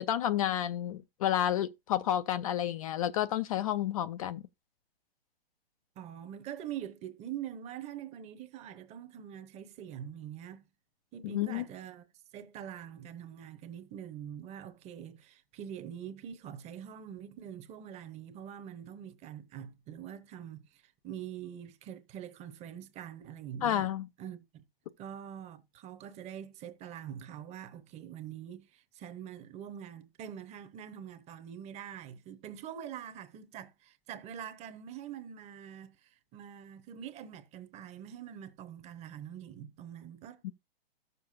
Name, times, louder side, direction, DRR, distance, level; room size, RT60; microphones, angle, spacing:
voice 1, 0.0-4.4 11.2-11.6 23.6-24.1 40.4-40.5, left 11 dB, 40° left, 0.4 m, -30 dB
voice 2, 6.0-10.7 11.1-12.1 12.3-23.9 24.2-24.6 25.0-40.5, right 9 dB, 20° right, 0.8 m, -44 dB
14.0 x 6.8 x 2.5 m
hypercardioid pair, 135°, 29 cm